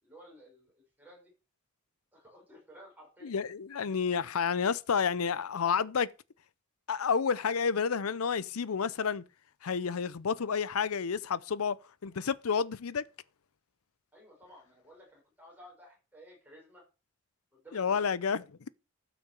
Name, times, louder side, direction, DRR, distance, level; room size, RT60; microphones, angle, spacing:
voice 1, 0.0-1.3 2.1-3.4 14.1-16.8 17.5-18.1, equal, 10° right, 5.7 m, -54 dB
voice 2, 3.2-6.1 6.9-9.2 9.6-11.8 12.0-13.0 17.7-18.7, left 6 dB, 85° left, 0.6 m, -30 dB
12.5 x 6.0 x 6.8 m
head